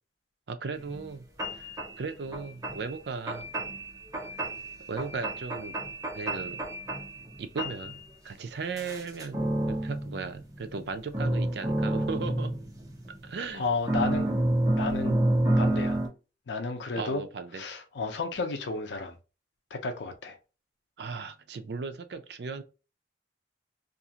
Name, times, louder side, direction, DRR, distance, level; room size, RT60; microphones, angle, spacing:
voice 1, 0.5-1.2 1.5-3.5 4.9-5.8 6.1-6.6 7.4-8.0 8.2-12.5 13.1-13.7 17.0-17.6 21.0-22.6, right 4 dB, 65° right, 0.4 m, -37 dB
sound 1, 0.9-1.0 1.4-1.9 2.3-2.8 3.3-3.8 4.1-4.7 5.0-7.3 7.6-7.9 8.8-10.9 11.1-13.3 13.9-16.1, right 1 dB, 20° right, 0.7 m, -28 dB
voice 2, 13.5-14.3 14.8-15.2 15.6-16.0 16.5-17.2 17.5-19.2 19.7-20.4, left 3 dB, 85° left, 0.5 m, -32 dB
2.6 x 2.4 x 2.7 m
head